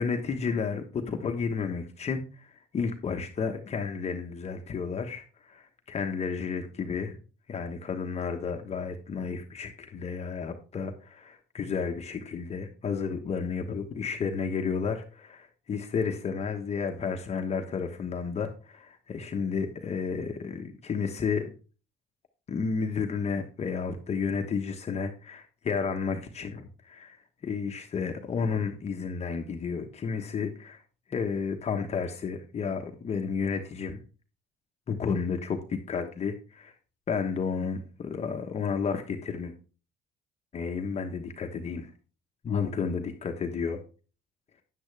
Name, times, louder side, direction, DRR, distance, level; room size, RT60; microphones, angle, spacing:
voice 1, 0.0-7.2 7.5-21.5 22.5-30.8 31.1-34.0 34.9-36.7 37.1-39.5 40.5-41.9 42.4-43.8, left 5 dB, 40° left, 1.2 m, -32 dB
9.6 x 8.9 x 3.4 m
cardioid pair, 110°, 17 cm